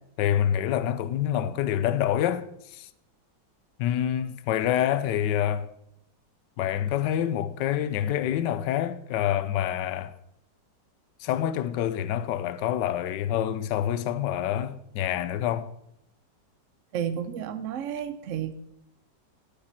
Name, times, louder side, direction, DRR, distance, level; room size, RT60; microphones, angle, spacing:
voice 1, 0.2-2.5 2.7-2.9 3.8-5.7 6.6-10.1 11.2-15.7, left 10 dB, 80° left, 1.3 m, -27 dB
voice 2, 16.9-18.5, right 9 dB, 60° right, 0.8 m, -31 dB
12.0 x 7.0 x 5.8 m
omnidirectional pair, 1.9 m